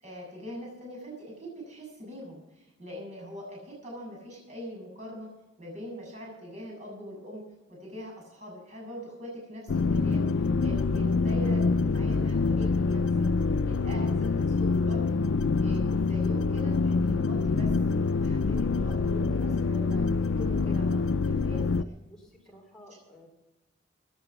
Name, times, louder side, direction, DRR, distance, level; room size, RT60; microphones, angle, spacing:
voice 1, 0.0-5.3 5.6-7.4 7.7-15.2 15.6-17.7 18.2-20.0 20.3-21.6, equal, 35° right, -3 dB, 7.4 m, -42 dB
sound 1, 9.7-21.8, left 4 dB, 90° left, 0.5 m, -26 dB
voice 2, 21.3-23.3, equal, 5° left, -2 dB, 4.1 m, -53 dB
17.0 x 10.5 x 5.9 m, 0.97 s
head